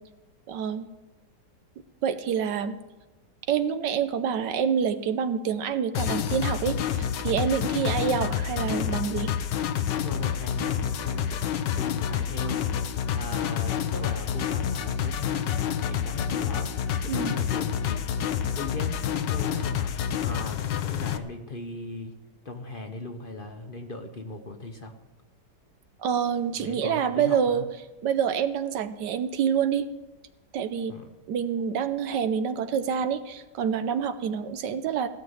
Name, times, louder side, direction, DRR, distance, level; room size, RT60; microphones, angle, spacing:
voice 1, 0.5-0.9 2.0-2.8 3.5-9.3 17.1-17.4 26.0-27.6 28.0-29.9 30.5-30.9 31.3-35.1, right 7 dB, 80° right, 10 dB, 1.4 m, -27 dB
sound 1, 5.9-21.2, left 8 dB, 90° left, 1.4 m, -28 dB
voice 2, 10.0-12.8 13.1-16.7 17.0-18.1 18.5-19.9 20.2-22.2 22.4-24.9 26.6-27.6 30.9-31.1, left 3 dB, 40° left, 5 dB, 0.9 m, -38 dB
16.0 x 6.7 x 9.6 m, 1.1 s
omnidirectional pair, 1.9 m